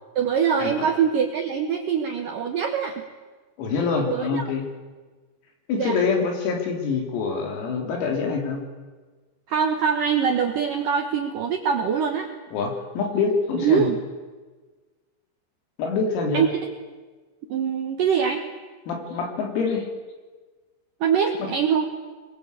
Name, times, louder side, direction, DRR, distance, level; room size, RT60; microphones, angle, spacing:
voice 1, 0.2-3.0 4.1-4.5 5.8-6.1 9.5-12.3 13.6-14.0 16.3-16.5 17.5-18.4 21.0-21.9, right 7 dB, 85° right, 3 dB, 1.9 m, -23 dB
voice 2, 3.6-4.6 5.7-8.6 12.5-13.9 15.8-16.5 18.9-19.9 21.4-21.5, left 4 dB, 90° left, 2 dB, 6.3 m, -25 dB
24.0 x 22.0 x 8.3 m, 1.3 s
omnidirectional pair, 6.0 m